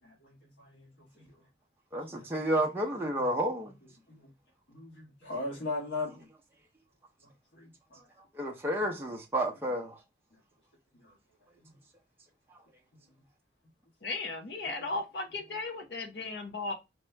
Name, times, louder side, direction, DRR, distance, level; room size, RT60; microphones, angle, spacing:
voice 1, 0.0-1.3 2.1-2.4 3.2-3.3 4.1-4.3 4.7-6.3 7.6-8.1 10.9-11.1 11.6-11.8, left 3 dB, 85° left, 1.5 m, -40 dB
voice 2, 1.9-3.8 8.3-10.0, right 1 dB, 10° right, 0.6 m, -31 dB
voice 3, 14.0-16.7, left 3 dB, 65° left, 0.9 m, -36 dB
4.3 x 2.7 x 3.3 m
head